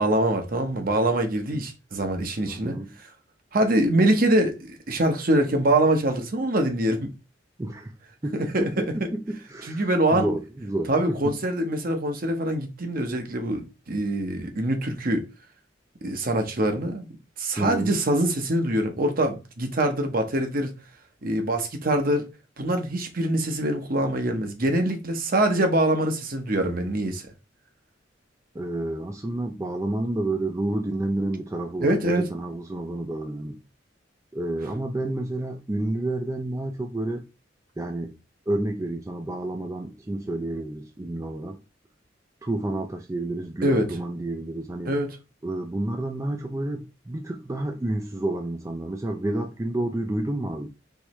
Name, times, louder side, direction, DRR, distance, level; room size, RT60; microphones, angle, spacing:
voice 1, 0.0-2.8 3.5-7.1 8.3-8.8 9.7-10.3 10.9-15.2 16.0-17.1 17.4-20.7 21.2-22.3 22.6-27.2 31.8-32.3 43.6-43.9 44.9-45.1, right 1 dB, 50° right, 0.9 m, -24 dB
voice 2, 2.5-2.9 7.6-7.9 8.2-11.3 17.6-18.0 28.5-33.6 34.3-37.2 37.8-38.1 38.5-41.6 42.4-44.9 45.4-50.7, right 1 dB, 15° right, 0.4 m, -30 dB
4.6 x 3.4 x 3.1 m
head